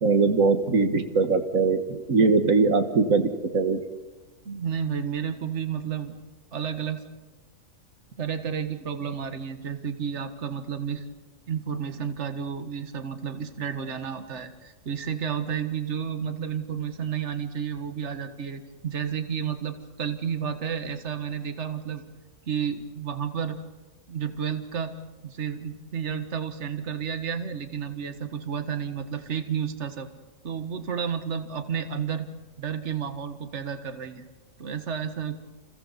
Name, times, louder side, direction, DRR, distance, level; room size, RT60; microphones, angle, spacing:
voice 1, 0.0-3.8, right 4 dB, 85° right, 7 dB, 1.9 m, -21 dB
voice 2, 4.5-6.2 6.5-7.0 8.2-11.0 11.5-22.0 22.5-23.6 24.1-24.9 25.2-30.1 30.4-32.3 32.6-34.3 34.6-35.4, right 7 dB, 60° right, 8 dB, 1.8 m, -31 dB
29.5 x 29.0 x 4.1 m, 1.2 s
omnidirectional pair, 1.4 m